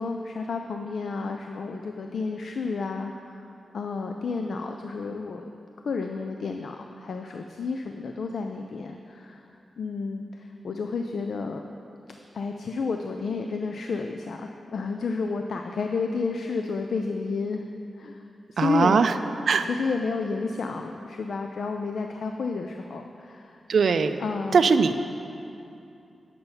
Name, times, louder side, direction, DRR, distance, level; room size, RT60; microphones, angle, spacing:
voice 1, 0.0-5.5 5.8-9.4 9.8-11.6 12.3-17.6 18.0-18.2 18.5-19.0 19.6-23.6 24.2-24.7, left 4 dB, 65° left, 4 dB, 0.4 m, -31 dB
voice 2, 18.6-19.1 19.5-19.7 23.7-24.2 24.5-25.0, right 5 dB, 65° right, 10 dB, 0.4 m, -20 dB
8.0 x 6.8 x 5.5 m, 2.7 s
wide cardioid pair, 150°, 0 cm